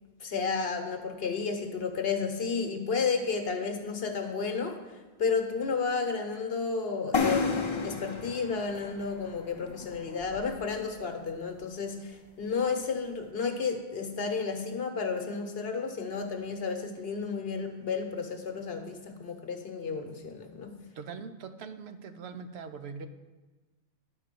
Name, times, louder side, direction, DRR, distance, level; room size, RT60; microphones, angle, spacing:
voice 1, 0.2-4.8 5.2-20.7, left 5 dB, 60° left, 5 dB, 1.1 m, -32 dB
sound 1, 7.1-10.8, left 4 dB, 35° left, 0.5 m, -32 dB
voice 2, 21.0-23.1, right 5 dB, 70° right, 10 dB, 0.9 m, -42 dB
10.0 x 4.4 x 6.8 m, 1.2 s
omnidirectional pair, 1.2 m